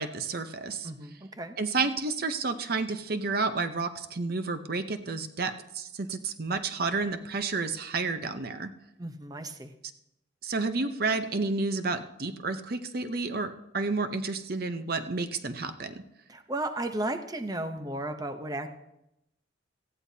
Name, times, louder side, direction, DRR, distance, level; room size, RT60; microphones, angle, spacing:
voice 1, 0.0-0.9 1.6-8.7 10.4-16.0, right 3 dB, 50° right, 9 dB, 0.7 m, -31 dB
voice 2, 0.8-1.6 9.0-9.7 16.3-18.7, right 1 dB, 20° right, 7 dB, 0.7 m, -34 dB
18.5 x 14.5 x 2.8 m, 0.85 s
head